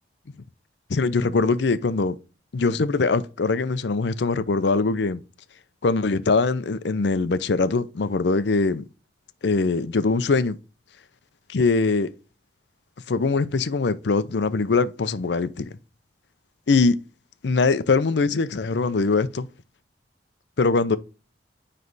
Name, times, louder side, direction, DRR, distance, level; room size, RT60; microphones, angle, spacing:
voice 1, 0.9-2.2 2.5-5.2 5.8-8.8 9.4-10.6 11.5-12.1 13.1-15.7 16.7-17.0 17.4-19.5 20.6-21.0, left 4 dB, 70° left, 0.5 m, -22 dB
9.4 x 3.3 x 4.0 m
head